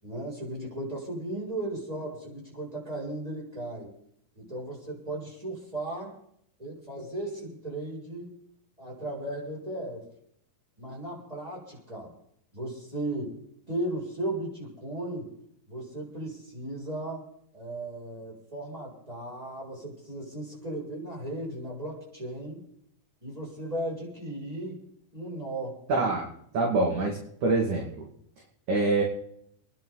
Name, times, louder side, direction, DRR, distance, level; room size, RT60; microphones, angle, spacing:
voice 1, 0.0-3.9 4.3-6.1 6.6-8.3 8.8-10.1 10.8-12.1 12.5-13.4 13.7-15.3 15.7-17.3 17.5-22.6 23.2-24.8 25.1-25.8, right 1 dB, 5° right, -4 dB, 6.8 m, -36 dB
voice 2, 25.9-26.3 26.5-28.1 28.7-29.0, right 3 dB, 45° right, -1 dB, 3.1 m, -25 dB
28.5 x 10.5 x 4.1 m, 0.70 s
omnidirectional pair, 5.9 m